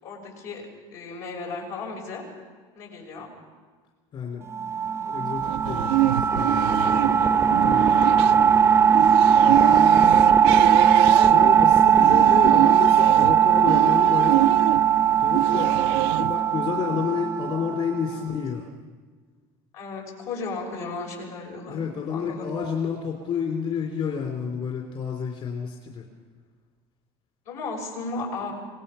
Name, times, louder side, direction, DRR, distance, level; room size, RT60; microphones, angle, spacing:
voice 1, 0.0-2.2 2.7-3.3 6.6-7.5 7.9-8.2 9.6-10.6 19.7-22.5 27.5-28.5, left 3 dB, 75° left, -1 dB, 6.3 m, -36 dB
voice 2, 4.1-4.4 4.8-6.6 7.6-7.8 11.3-14.5 15.2-15.7 16.2-18.7 21.7-26.0, left 6 dB, 45° left, 1 dB, 3.3 m, -30 dB
sound 1, 4.5-18.0, right 8 dB, 20° right, 0.6 m, -19 dB
sound 2, 5.4-16.3, right 15 dB, 90° right, 0.6 m, -27 dB
25.5 x 18.5 x 5.7 m, 1.5 s
cardioid pair, 125°, 12 cm